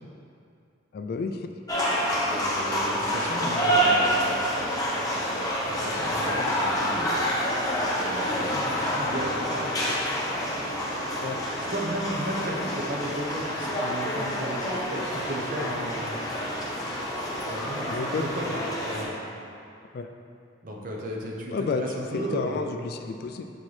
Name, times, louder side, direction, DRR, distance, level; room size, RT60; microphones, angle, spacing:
voice 1, 0.9-1.5 11.2-11.4 17.9-18.3 19.9-20.1 21.5-21.8 22.1-23.5, left 4 dB, 50° left, 6 dB, 0.3 m, -31 dB
sound 1, 1.7-19.0, equal, 20° left, 0.9 m, -28 dB
voice 2, 2.2-4.2 5.7-7.2 8.0-9.7 11.6-16.2 17.4-18.5 18.8-19.1 20.6-22.6, right 1 dB, 45° right, -2 dB, 0.8 m, -34 dB
7.1 x 4.4 x 3.2 m, 2.5 s
head